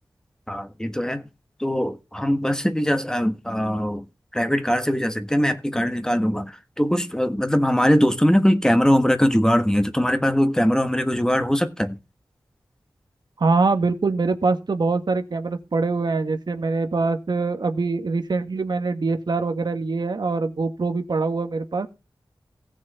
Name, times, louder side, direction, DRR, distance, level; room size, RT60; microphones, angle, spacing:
voice 1, 0.5-1.2 1.6-4.0 4.3-12.0, equal, 10° left, 1.4 m, -21 dB
voice 2, 13.4-22.0, right 3 dB, 65° right, 1.7 m, -24 dB
17.5 x 6.3 x 4.2 m
wide cardioid pair, 90°, 8 cm